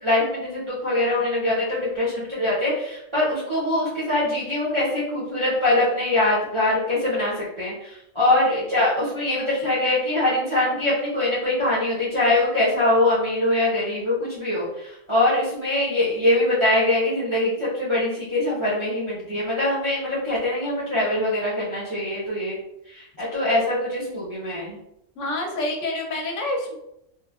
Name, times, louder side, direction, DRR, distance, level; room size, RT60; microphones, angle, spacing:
voice 1, 0.0-22.6 22.9-24.8, left 1 dB, 35° right, -8 dB, 0.5 m, -23 dB
voice 2, 25.2-26.8, left 2 dB, 75° left, 1 dB, 0.9 m, -27 dB
3.0 x 2.1 x 2.2 m, 0.80 s
omnidirectional pair, 1.3 m